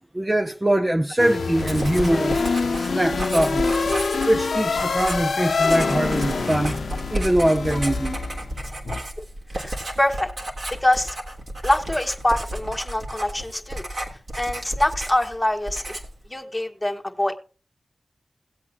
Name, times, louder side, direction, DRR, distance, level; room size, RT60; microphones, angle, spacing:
voice 1, 0.1-2.4 2.8-3.8 4.3-6.8 7.1-8.2, right 1 dB, 20° right, 0.6 m, -22 dB
sound 1, 1.2-9.0, left 4 dB, 90° left, 0.7 m, -26 dB
Writing, 1.6-15.4 15.7-16.2, right 1 dB, 60° right, 3.1 m, -32 dB
voice 2, 9.6-10.3 10.8-11.2 11.6-13.8 14.4-15.8 16.3-17.4, left 1 dB, 15° left, 1.7 m, -24 dB
18.0 x 8.2 x 3.0 m
cardioid pair, 55°, 0 cm